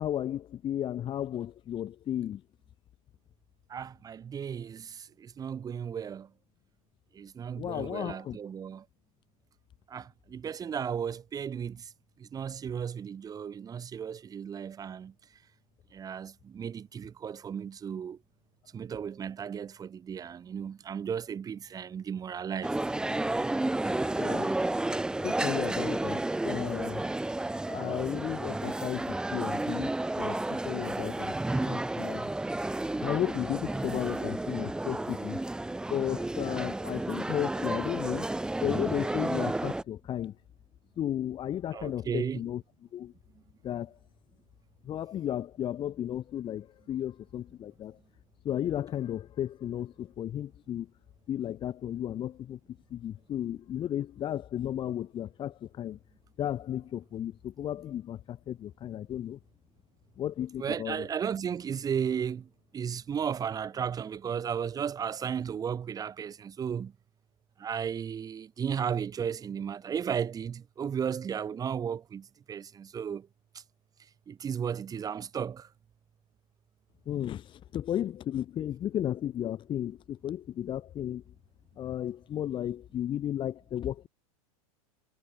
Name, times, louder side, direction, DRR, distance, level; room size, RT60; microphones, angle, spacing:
voice 1, 0.0-2.4 7.6-8.4 24.2-24.5 25.2-27.1 27.7-29.9 30.2-32.3 33.0-35.4 35.9-38.3 38.6-40.3 41.0-42.6 42.9-43.1 43.6-44.0 44.8-48.0 48.4-50.9 51.3-52.6 52.9-56.0 56.4-59.4 60.2-61.0 77.1-81.2 81.8-84.1, left 11 dB, 25° left, 2.5 m, -34 dB
voice 2, 3.7-6.3 7.1-8.9 9.9-11.9 12.2-15.1 15.9-18.2 18.7-22.7 41.7-42.4 60.6-66.9 67.6-73.3 73.5-73.6 74.3-75.7, right 7 dB, 20° right, 2.5 m, -35 dB
sound 1, 22.6-39.8, right 2 dB, 5° right, 0.9 m, -32 dB
supercardioid pair, 140°, 19 cm